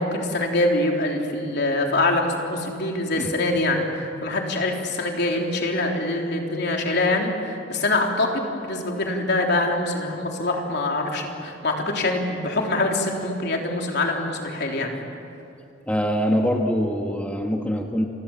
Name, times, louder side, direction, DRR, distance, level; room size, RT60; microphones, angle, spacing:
voice 1, 0.0-15.0, left 2 dB, 60° left, 1 dB, 3.6 m, -24 dB
voice 2, 15.9-18.1, equal, 5° left, 2 dB, 1.6 m, -23 dB
29.5 x 25.5 x 7.3 m, 2.6 s
head